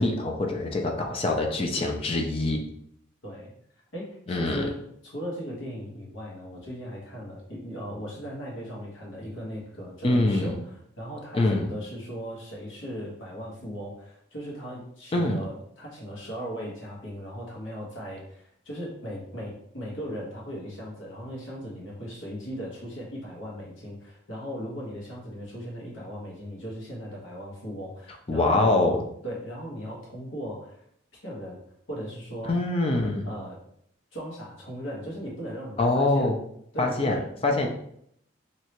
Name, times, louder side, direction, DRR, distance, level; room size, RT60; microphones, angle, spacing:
voice 1, 0.0-2.6 4.3-4.7 10.0-10.6 11.3-11.7 15.1-15.4 28.3-29.0 32.4-33.3 35.8-36.4 36.8-37.2 37.4-37.7, left 2 dB, 30° left, 2 dB, 0.4 m, -24 dB
voice 2, 3.9-28.7 29.2-30.8 31.2-31.6 31.9-32.6 33.2-33.6 34.1-36.3 36.7-37.7, equal, 85° left, -3 dB, 1.3 m, -38 dB
3.2 x 2.8 x 3.0 m, 0.70 s
head